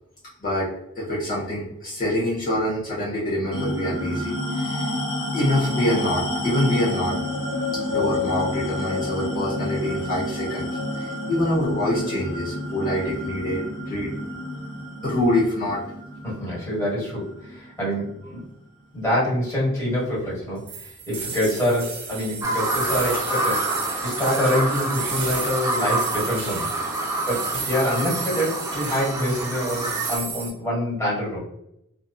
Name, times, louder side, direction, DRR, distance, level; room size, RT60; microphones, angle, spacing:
voice 1, 1.0-4.9 5.3-7.1 7.8-10.7 11.0-14.1 15.0-15.8, left 1 dB, 40° left, -8 dB, 0.8 m, -25 dB
sound 1, 3.5-18.3, left 1 dB, 70° left, 1.0 m, -29 dB
voice 2, 16.2-18.4 18.9-20.6 21.1-23.6 24.0-26.6 27.3-31.4, equal, 15° left, -7 dB, 1.3 m, -25 dB
sound 2, 20.7-30.5, right 5 dB, 55° right, 0.7 m, -33 dB
Bird vocalization bird call bird song, 22.4-30.2, right 1 dB, 15° right, 0.4 m, -28 dB
2.5 x 2.4 x 2.3 m, 0.80 s
head